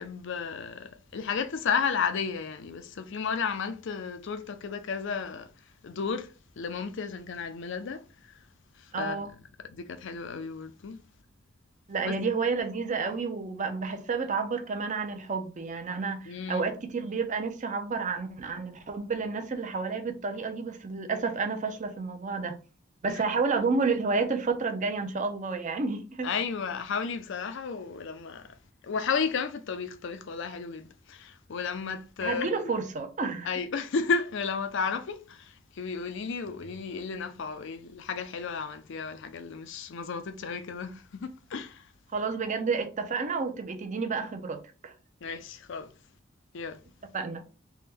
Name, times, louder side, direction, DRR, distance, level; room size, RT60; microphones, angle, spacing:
voice 1, 0.0-5.5 5.8-8.0 9.0-11.0 12.0-12.1 16.3-16.7 23.1-23.2 26.2-28.6 28.8-32.7 33.4-41.8 45.2-45.9 46.5-46.8, left 5 dB, 60° left, 0.5 m, -33 dB
voice 2, 8.9-9.3 11.9-22.6 23.0-26.3 32.2-33.5 42.1-44.9 47.1-47.4, right 4 dB, 40° right, 0.6 m, -30 dB
3.4 x 2.2 x 4.3 m
head